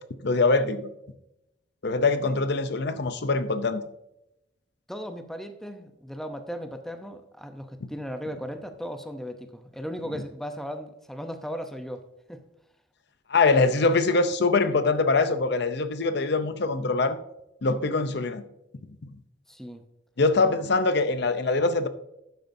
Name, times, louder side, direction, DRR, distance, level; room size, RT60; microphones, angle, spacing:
voice 1, 0.2-0.9 1.8-3.8 13.3-17.2 17.6-18.4 19.0-19.1 20.2-21.9, left 3 dB, 55° left, 11 dB, 0.6 m, -23 dB
voice 2, 4.9-12.0 12.3-12.4 19.5-19.8, equal, ahead, 6 dB, 0.7 m, -36 dB
12.0 x 9.2 x 2.7 m, 0.86 s
head